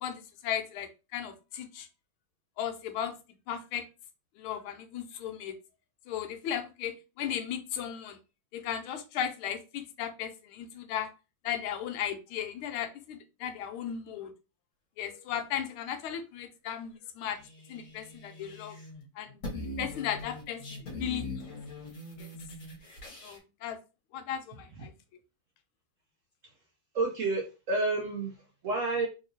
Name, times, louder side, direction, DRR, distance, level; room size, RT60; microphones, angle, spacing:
voice 1, 0.0-1.9 2.6-3.1 3.5-3.8 4.4-5.5 6.1-8.2 8.5-11.1 11.4-14.3 15.0-17.4 17.7-18.8 19.2-19.3 19.8-21.5 22.2-22.3 23.2-23.8 24.1-24.9, left 9 dB, 80° left, 8 dB, 1.4 m, -36 dB
sound 1, 17.3-19.0 19.3-23.4, left 2 dB, 45° left, 1.4 m, -42 dB
voice 2, 26.9-29.1, right 3 dB, 80° right, -1 dB, 0.7 m, -30 dB
3.5 x 2.8 x 2.6 m, 0.29 s
omnidirectional pair, 2.3 m